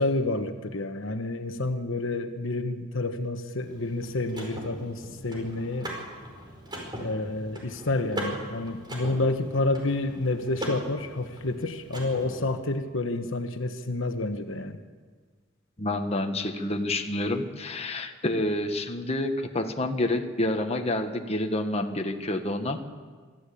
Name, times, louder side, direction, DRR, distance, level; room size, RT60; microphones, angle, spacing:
voice 1, 0.0-5.9 7.0-14.8, left 2 dB, 70° left, 7 dB, 1.2 m, -29 dB
Car / Mechanisms, 3.6-12.6, equal, 20° right, 4.8 m, -39 dB
voice 2, 15.8-22.9, left 1 dB, 30° left, 4 dB, 1.4 m, -28 dB
25.0 x 14.0 x 8.4 m, 1.5 s
head